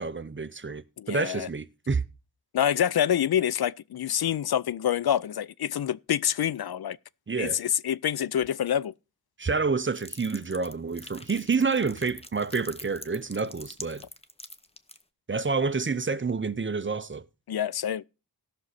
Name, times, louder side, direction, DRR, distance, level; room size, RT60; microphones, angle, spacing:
voice 1, 0.0-2.0 7.3-7.6 9.4-14.0 15.3-17.2, right 4 dB, 30° right, 0.7 m, -28 dB
voice 2, 1.0-1.5 2.5-7.0 7.4-8.9 17.5-18.0, left 10 dB, 70° left, 0.5 m, -26 dB
sound 1, 9.9-15.0, left 2 dB, 15° left, 0.8 m, -44 dB
17.0 x 6.4 x 4.1 m
wide cardioid pair, 95°, 39 cm